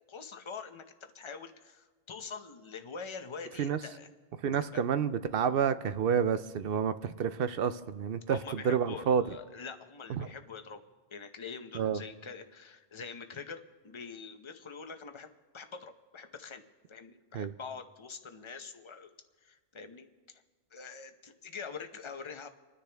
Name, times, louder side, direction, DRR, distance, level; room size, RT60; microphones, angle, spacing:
voice 1, 0.1-4.1 4.7-4.8 8.3-16.6 16.9-19.1 19.4-20.4 20.7-22.5, left 5 dB, 30° left, 7 dB, 0.7 m, -45 dB
voice 2, 4.4-9.2 10.1-10.3 11.7-12.0 17.3-17.5, right 7 dB, 60° right, 13 dB, 0.7 m, -29 dB
29.5 x 9.9 x 3.4 m, 1.3 s
omnidirectional pair, 1.2 m